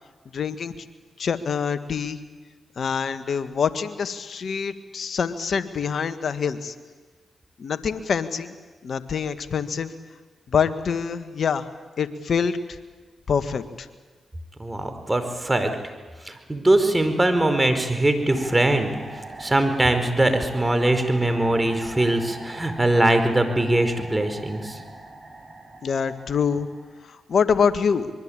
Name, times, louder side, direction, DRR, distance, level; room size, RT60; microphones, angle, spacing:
voice 1, 0.3-0.8 1.2-2.2 2.7-6.7 7.6-8.5 8.8-9.9 10.5-11.7 12.0-12.8 13.3-13.9 25.8-26.7 27.0-28.1, left 6 dB, 65° left, 10 dB, 1.7 m, -25 dB
voice 2, 14.6-15.8 16.2-18.9 19.4-24.8, right 1 dB, 20° right, 8 dB, 4.8 m, -21 dB
sound 1, 18.3-27.1, right 2 dB, 40° right, 7.1 m, -41 dB
24.5 x 22.5 x 8.9 m, 1.4 s
supercardioid pair, 40°, 0 cm